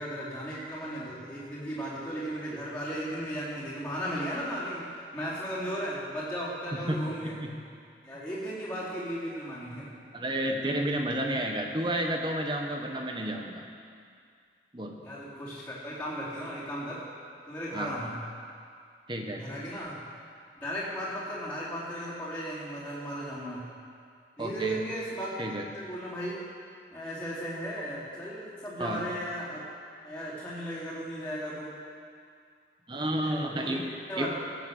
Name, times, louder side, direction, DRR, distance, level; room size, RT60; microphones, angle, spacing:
voice 1, 0.0-7.4 8.0-9.9 15.0-17.0 17.5-18.1 19.3-20.0 20.6-23.6 24.4-25.4 25.7-26.5 26.9-29.6 30.0-31.8 33.2-34.4, equal, 10° left, -12 dB, 4.2 m, -36 dB
voice 2, 6.9-7.5 10.1-13.6 14.7-15.0 17.7-17.9 19.1-19.4 24.4-24.8 25.4-25.6 28.8-29.0 32.9-33.8 34.2-34.3, right 1 dB, 25° right, 2 dB, 1.3 m, -31 dB
16.5 x 8.1 x 7.9 m, 2.2 s
head